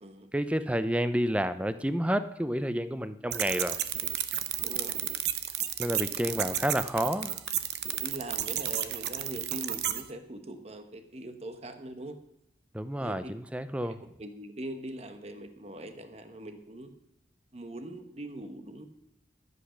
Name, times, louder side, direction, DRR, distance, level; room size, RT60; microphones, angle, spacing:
voice 1, 0.3-3.8 5.8-7.4 12.7-14.0, equal, 5° right, 12 dB, 0.5 m, -30 dB
sound 1, 3.3-10.0, right 11 dB, 65° right, 0.8 m, -32 dB
voice 2, 4.6-5.0 8.0-12.2 13.0-13.3 13.8-16.9 17.5-18.9, right 1 dB, 35° right, 8 dB, 1.1 m, -42 dB
13.5 x 8.1 x 6.3 m, 0.81 s
head